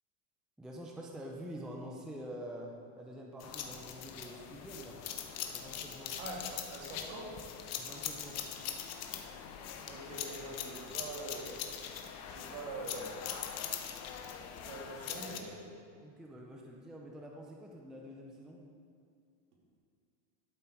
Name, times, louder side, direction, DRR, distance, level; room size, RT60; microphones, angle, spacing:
voice 1, 0.6-5.0 5.5-6.2 7.8-8.4 16.0-18.6, equal, ahead, -1 dB, 0.5 m, -47 dB
sound 1, 3.4-15.4, left 8 dB, 35° left, 0.8 m, -42 dB
voice 2, 6.2-7.3 9.8-11.7 12.2-13.3 14.6-15.7, right 2 dB, 65° right, -3 dB, 3.0 m, -44 dB
11.5 x 7.7 x 4.6 m, 2.3 s
supercardioid pair, 150°, 45 cm